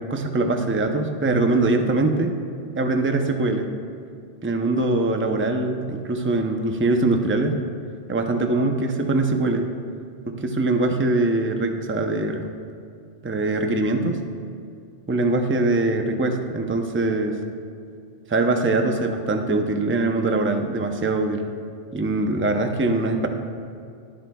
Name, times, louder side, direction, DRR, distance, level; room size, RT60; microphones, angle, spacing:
voice 1, 0.1-2.3 2.7-3.7 4.4-7.6 8.1-9.7 10.3-12.4 13.2-14.2 15.1-17.4 18.3-21.4 21.9-23.3, right 2 dB, 15° right, 4 dB, 0.4 m, -22 dB
21.0 x 7.7 x 2.3 m, 2.3 s
omnidirectional pair, 1.3 m